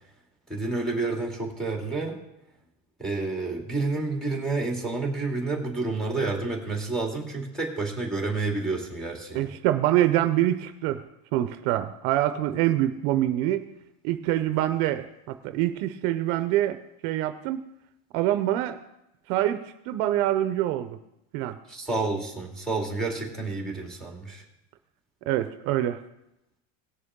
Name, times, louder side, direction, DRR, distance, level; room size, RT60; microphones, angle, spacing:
voice 1, 0.5-2.2 3.0-9.5 21.7-24.4, right 3 dB, ahead, 0 dB, 2.3 m, -29 dB
voice 2, 9.3-11.0 11.3-13.7 14.0-16.8 17.0-17.6 18.1-18.8 19.3-21.0 21.3-21.6 25.3-26.0, right 13 dB, 60° right, 10 dB, 0.8 m, -25 dB
18.5 x 6.7 x 3.7 m, 0.86 s
supercardioid pair, 150°, 47 cm